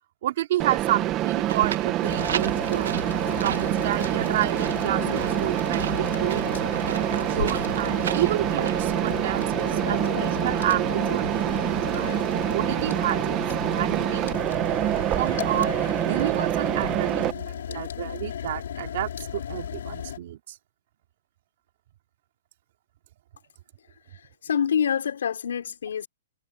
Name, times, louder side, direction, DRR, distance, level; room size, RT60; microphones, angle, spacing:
voice 1, 0.2-2.9 3.4-6.5 7.3-11.6 11.9-12.1 12.5-14.3 14.9-15.7 16.0-20.4, right 14 dB, 40° right, 2.8 m, -30 dB
Mechanisms, 0.6-17.3, right 14 dB, 20° right, 1.3 m, -26 dB
sound 1, 1.3-9.6, right 8 dB, 65° right, 1.9 m, -36 dB
sound 2, 2.0-20.2, left 9 dB, 65° left, 5.0 m, -34 dB
voice 2, 24.1-26.1, left 8 dB, 80° left, 5.4 m, -26 dB
hypercardioid pair, 180°, 0 cm